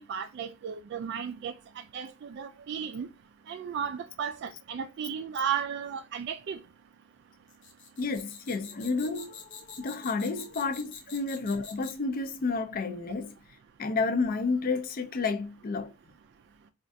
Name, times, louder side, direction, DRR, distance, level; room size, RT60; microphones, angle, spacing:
voice 1, 0.1-3.1 3.5-6.6, right 7 dB, 60° right, 0.3 m, -34 dB
sound 1, 7.5-12.1, left 6 dB, 65° left, 0.8 m, -46 dB
voice 2, 8.0-13.3 13.8-15.9, left 4 dB, 45° left, 0.4 m, -31 dB
4.3 x 2.3 x 2.6 m
head